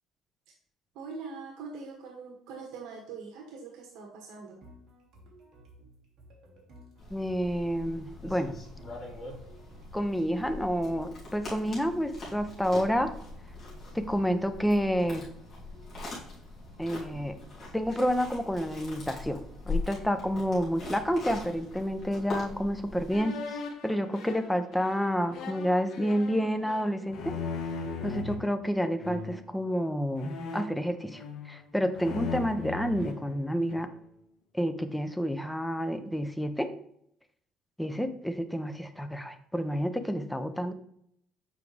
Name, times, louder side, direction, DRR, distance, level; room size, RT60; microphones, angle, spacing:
voice 1, 0.9-4.6, right 4 dB, 85° right, 1 dB, 1.1 m, -42 dB
sound 1, 4.6-21.3, equal, 50° right, 1.8 m, -55 dB
sound 2, 7.0-23.2, left 3 dB, 35° left, 2.3 m, -41 dB
voice 2, 7.1-8.5 9.9-13.1 13.9-15.3 16.8-17.4 17.7-19.4 19.7-27.3 28.0-33.9 34.5-36.7 37.8-40.7, equal, 5° left, 8 dB, 0.4 m, -29 dB
sound 3, 23.1-28.4 29.0-29.5 30.2-31.6 31.9-33.9, left 4 dB, 60° left, 0.9 m, -39 dB
7.1 x 4.8 x 3.2 m, 0.71 s
cardioid pair, 165°, 0 cm